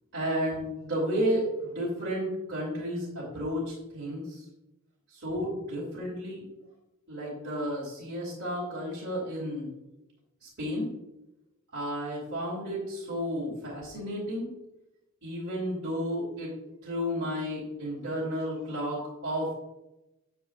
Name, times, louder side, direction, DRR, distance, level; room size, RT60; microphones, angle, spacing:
voice 1, 0.1-4.4 5.1-6.4 7.1-9.7 10.4-10.9 11.7-14.5 15.2-16.5 16.8-19.5, equal, 50° right, -6 dB, 2.8 m, -32 dB
9.5 x 7.9 x 2.4 m, 0.95 s
head